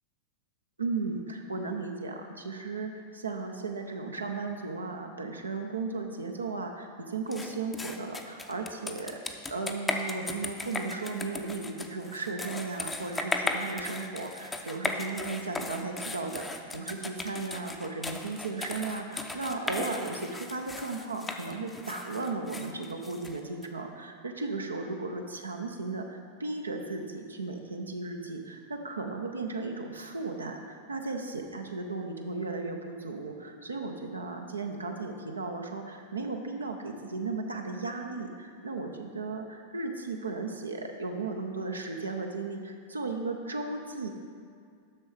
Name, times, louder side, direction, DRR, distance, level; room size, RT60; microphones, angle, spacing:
voice 1, 0.8-44.1, right 3 dB, 75° right, 3 dB, 0.7 m, -35 dB
sound 1, 7.3-23.7, left 2 dB, 10° left, 0.6 m, -37 dB
7.3 x 6.3 x 4.9 m, 2.3 s
figure-of-eight pair, 90°, 0 cm